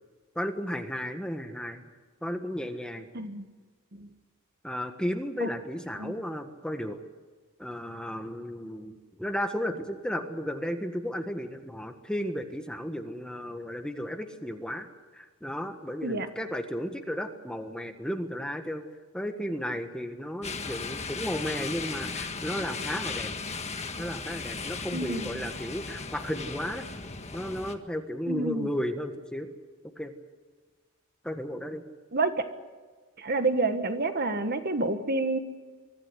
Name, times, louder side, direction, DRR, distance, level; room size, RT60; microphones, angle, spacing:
voice 1, 0.3-1.8 2.2-3.1 4.6-7.0 7.6-14.9 15.1-18.8 19.1-23.3 24.0-26.8 27.3-29.5 30.0-30.1 31.2-31.8, equal, 5° left, 6 dB, 1.5 m, -34 dB
voice 2, 3.1-3.5 4.0-4.1 5.4-5.5 6.0-6.1 16.0-16.3 24.9-25.2 28.3-28.7 32.1-32.4 33.2-35.4, right 3 dB, 45° right, 8 dB, 1.5 m, -28 dB
sound 1, 20.4-27.8, left 4 dB, 30° left, 1.7 m, -36 dB
24.0 x 14.0 x 9.8 m, 1.4 s
head